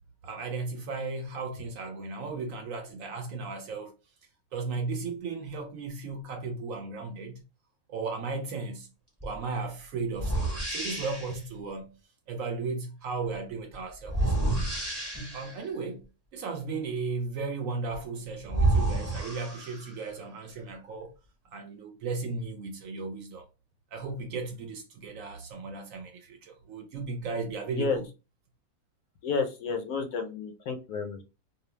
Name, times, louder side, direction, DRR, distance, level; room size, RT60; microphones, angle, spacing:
voice 1, 0.2-3.9 4.5-7.4 7.9-8.9 9.2-12.0 12.3-14.3 15.3-21.1 21.5-23.5 23.9-28.1, right 4 dB, 75° right, 0.9 m, -35 dB
sound 1, 9.2-9.4 10.1-11.4 14.0-15.6 17.9-18.0 18.5-20.1, right 2 dB, 15° right, 0.6 m, -29 dB
voice 2, 29.2-31.2, left 5 dB, 75° left, 1.0 m, -31 dB
2.5 x 2.0 x 3.0 m
omnidirectional pair, 1.5 m